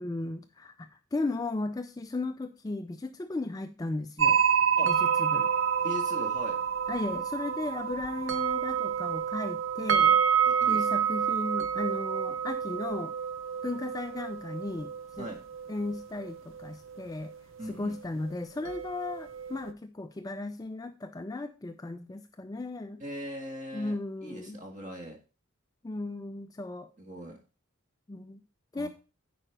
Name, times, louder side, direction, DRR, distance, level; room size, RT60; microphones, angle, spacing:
voice 1, 0.0-4.4 4.9-5.5 6.9-10.2 10.7-13.1 13.6-15.3 15.7-17.3 17.6-23.0 23.7-24.6 25.8-26.9 28.1-28.4 28.7-28.9, left 2 dB, 15° left, 8 dB, 0.3 m, -36 dB
sound 1, 4.2-17.4 17.6-17.7 18.7-19.7, right 7 dB, 60° right, 0.6 m, -28 dB
voice 2, 5.8-6.6 10.5-10.9 15.2-15.4 17.6-18.0 23.0-25.2 27.0-27.4 28.7-28.9, left 1 dB, 35° right, 2 dB, 1.9 m, -40 dB
9.0 x 5.0 x 4.4 m, 0.33 s
head